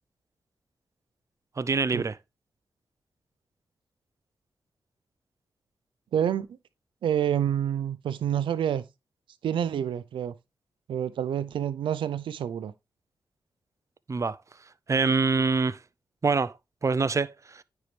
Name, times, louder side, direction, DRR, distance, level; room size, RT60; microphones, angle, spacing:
voice 1, 1.6-2.2 14.1-14.4 14.9-15.8 16.2-16.5 16.8-17.6, right 4 dB, 40° right, 0.6 m, -25 dB
voice 2, 6.1-6.5 7.0-8.8 9.4-10.3 10.9-12.7, right 9 dB, 85° right, 0.5 m, -28 dB
9.4 x 4.5 x 3.3 m
cardioid pair, 55°, 8 cm